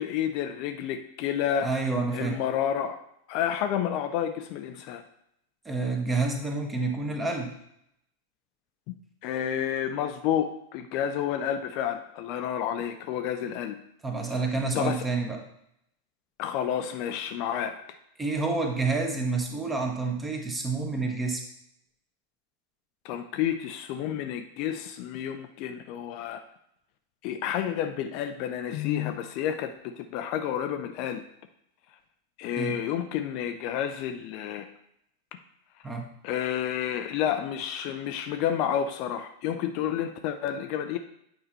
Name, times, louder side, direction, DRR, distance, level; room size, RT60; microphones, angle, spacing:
voice 1, 0.0-1.7 2.1-3.0 3.3-5.0 9.2-13.8 14.7-15.0 16.4-17.8 23.0-26.4 27.2-31.2 32.4-34.7 36.2-41.0, left 9 dB, 45° left, 7 dB, 0.6 m, -30 dB
voice 2, 1.6-2.4 5.6-7.5 14.0-15.4 18.2-21.4 32.6-32.8 35.8-36.1, right 3 dB, 15° right, 2 dB, 1.5 m, -28 dB
8.7 x 5.0 x 4.3 m, 0.75 s
figure-of-eight pair, 90°, 0 cm